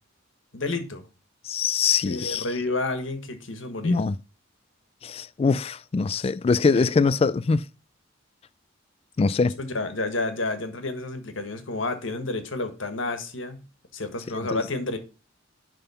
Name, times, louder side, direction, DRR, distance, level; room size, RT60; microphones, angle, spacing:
voice 1, 0.5-1.0 2.0-4.0 6.1-6.3 6.7-6.9 9.6-13.6 13.9-15.0, left 2 dB, 75° left, 1.5 m, -30 dB
voice 2, 1.5-2.4 3.8-4.1 5.0-7.6 9.2-9.6 14.5-14.6, left 4 dB, 30° left, 0.3 m, -23 dB
10.5 x 3.8 x 5.6 m
head